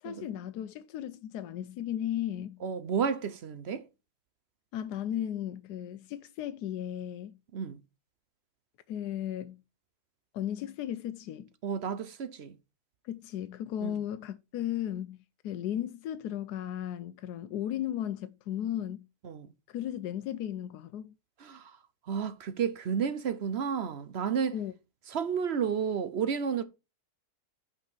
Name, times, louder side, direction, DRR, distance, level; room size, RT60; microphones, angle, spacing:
voice 1, 0.0-2.6 4.7-7.4 8.9-9.6 10.3-11.5 13.0-15.2 15.4-19.1 19.7-21.1 24.5-24.7, left 11 dB, 90° left, 1.2 m, -35 dB
voice 2, 2.6-3.8 7.5-7.8 11.6-12.6 13.8-14.0 19.2-19.5 21.4-21.8 22.1-24.5 25.1-26.6, right 7 dB, 55° right, 0.8 m, -31 dB
6.0 x 5.4 x 6.9 m
omnidirectional pair, 1.7 m